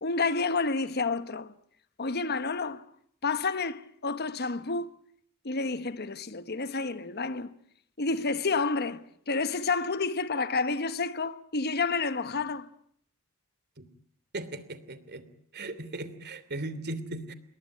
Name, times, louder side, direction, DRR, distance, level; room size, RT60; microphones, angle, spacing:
voice 1, 0.0-1.5 2.0-2.9 3.2-4.9 5.4-7.5 8.0-12.7, left 4 dB, 45° left, 1.1 m, -30 dB
voice 2, 14.3-15.3 15.5-17.3, right 2 dB, 50° right, 2.9 m, -37 dB
28.0 x 22.0 x 8.6 m
head